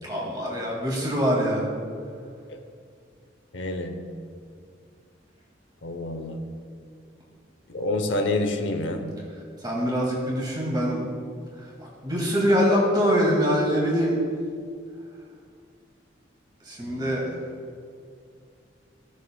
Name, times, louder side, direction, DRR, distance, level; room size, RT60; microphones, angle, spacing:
voice 1, 0.0-1.7 9.6-11.0 11.6-14.2 16.6-17.3, equal, 25° right, -4 dB, 2.1 m, -24 dB
voice 2, 3.5-4.0 5.8-6.4 7.7-9.0 16.9-17.1, left 2 dB, 85° left, 6 dB, 0.8 m, -27 dB
16.0 x 6.6 x 2.3 m, 2.2 s
head